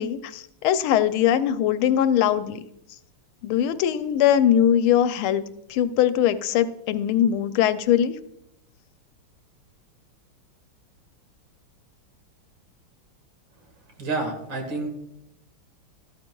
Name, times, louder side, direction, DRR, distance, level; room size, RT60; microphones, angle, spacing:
voice 1, 0.0-2.6 3.4-5.4 5.7-8.1, left 10 dB, 85° left, 12 dB, 1.5 m, -21 dB
voice 2, 14.0-14.9, right 3 dB, 65° right, 3 dB, 2.5 m, -29 dB
13.0 x 13.0 x 2.3 m, 0.78 s
omnidirectional pair, 2.3 m